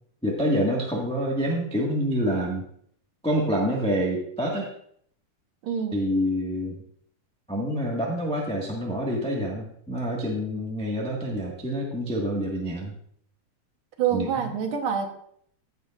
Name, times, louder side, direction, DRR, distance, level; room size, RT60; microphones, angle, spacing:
voice 1, 0.2-2.6 3.2-4.7 5.9-6.8 7.5-12.9 14.1-14.5, equal, 5° left, -3 dB, 1.3 m, -27 dB
voice 2, 5.6-6.0 14.0-15.1, right 7 dB, 85° right, 4 dB, 2.0 m, -26 dB
15.5 x 6.9 x 2.5 m, 0.65 s
omnidirectional pair, 2.3 m